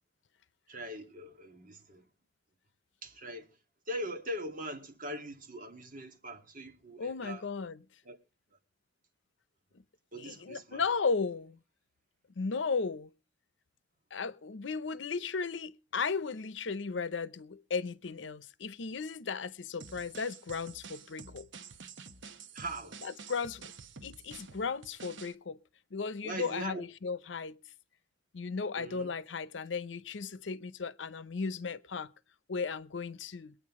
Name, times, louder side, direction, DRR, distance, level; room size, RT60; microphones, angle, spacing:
voice 1, 0.7-2.0 3.0-3.5 3.9-7.4 8.1-8.2 10.1-10.8 22.5-23.0 26.2-26.8 28.8-29.1, right 1 dB, 50° right, 2.0 m, -41 dB
voice 2, 7.0-7.8 10.2-11.6 12.4-13.1 14.1-21.5 23.0-23.7 24.0-25.6 25.9-27.6 28.3-32.1 32.5-33.6, left 5 dB, 85° left, 0.7 m, -35 dB
sound 1, 19.8-25.3, right 5 dB, 90° right, 1.0 m, -49 dB
23.5 x 9.2 x 3.6 m
head